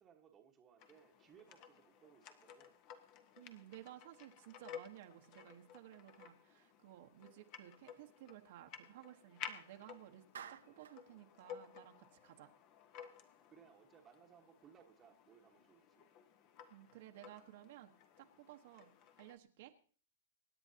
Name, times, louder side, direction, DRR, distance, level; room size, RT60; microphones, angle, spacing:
voice 1, 0.0-2.8 13.5-16.1, right 8 dB, 15° right, 1.3 m, -64 dB
sound 1, 0.8-19.4, left 8 dB, 30° left, 1.1 m, -55 dB
voice 2, 3.4-10.2 10.5-12.5 16.7-17.9 18.2-18.9 19.2-19.7, right 13 dB, 50° right, 1.2 m, -56 dB
Clapping, 10.3-11.0, right 8 dB, 85° right, 1.4 m, -51 dB
25.0 x 9.7 x 2.8 m
hypercardioid pair, 155°, 0 cm